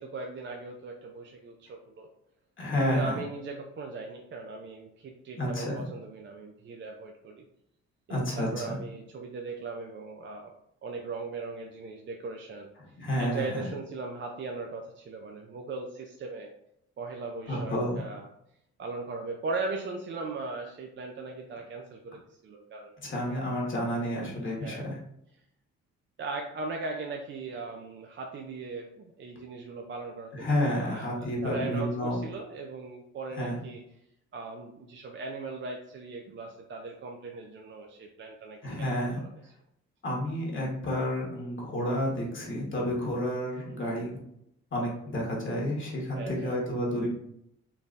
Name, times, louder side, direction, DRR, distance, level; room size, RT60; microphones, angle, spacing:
voice 1, 0.0-2.1 2.8-7.5 8.1-10.5 10.8-12.7 13.2-16.5 17.0-18.3 18.8-22.9 24.6-24.9 26.2-33.8 34.3-38.9 39.4-39.5 46.1-46.6, right 3 dB, 40° right, 2 dB, 0.4 m, -38 dB
voice 2, 2.6-3.2 5.4-5.9 8.1-8.8 13.0-13.7 17.5-18.0 23.0-25.0 30.3-32.2 33.3-33.6 38.6-39.2 40.0-44.2 44.7-47.1, equal, 40° left, -3 dB, 1.2 m, -30 dB
3.8 x 2.6 x 2.5 m, 0.75 s
cardioid pair, 90°, 30 cm